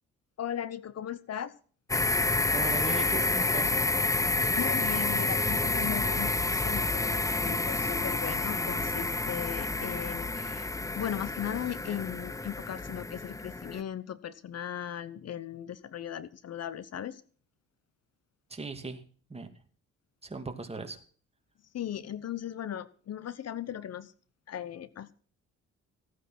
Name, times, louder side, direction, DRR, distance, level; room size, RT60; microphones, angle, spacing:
voice 1, 0.4-1.5 4.5-10.7 10.9-17.2 21.7-24.1 24.5-25.1, left 10 dB, 55° left, 16 dB, 1.0 m, -37 dB
sound 1, 1.9-13.8, left 2 dB, 10° left, 0.6 m, -29 dB
voice 2, 2.5-3.7 18.5-19.0 19.3-19.5 20.2-21.0, right 3 dB, 20° right, 6 dB, 2.6 m, -38 dB
16.0 x 9.4 x 6.1 m, 0.43 s
cardioid pair, 90°, 30 cm